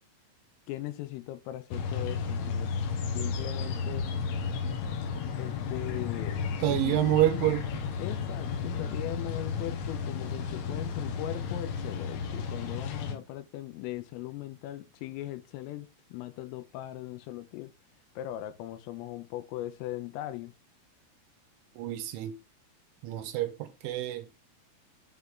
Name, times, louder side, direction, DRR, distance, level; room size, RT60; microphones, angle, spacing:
voice 1, 0.7-2.7 3.2-4.1 5.4-7.0 8.0-17.7 18.2-20.5, left 14 dB, 85° left, 3.4 m, -39 dB
sound 1, 1.7-13.2, left 5 dB, 70° left, 2.9 m, -33 dB
voice 2, 6.6-7.9 13.1-13.2 21.8-22.4 23.0-24.3, right 14 dB, 80° right, 3.1 m, -28 dB
8.1 x 3.7 x 6.3 m
omnidirectional pair, 5.8 m